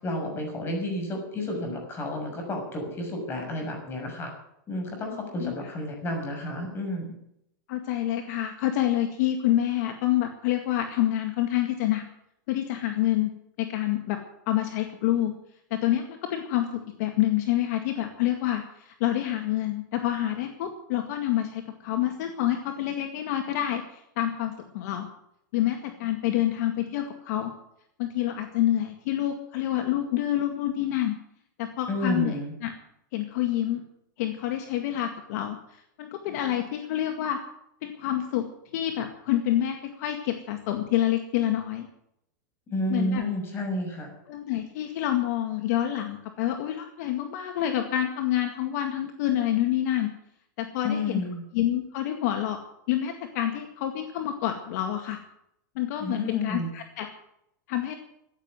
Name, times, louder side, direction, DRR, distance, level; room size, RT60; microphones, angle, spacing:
voice 1, 0.0-4.3 4.7-7.2 31.9-32.5 42.7-44.1 50.8-51.4 56.0-56.7, left 1 dB, 20° left, 2 dB, 6.5 m, -31 dB
voice 2, 7.7-12.0 12.5-13.3 13.6-14.2 14.5-15.3 15.7-25.1 25.5-27.5 28.0-31.1 31.6-32.3 32.6-32.7 33.1-33.8 34.2-37.4 37.8-38.5 38.7-41.9 42.9-43.2 44.3-50.1 50.6-51.2 51.5-52.6 52.9-55.2 55.8-57.1 57.7-58.0, left 12 dB, 55° left, 5 dB, 2.0 m, -27 dB
15.0 x 9.3 x 9.4 m, 0.76 s
supercardioid pair, 145°, 10 cm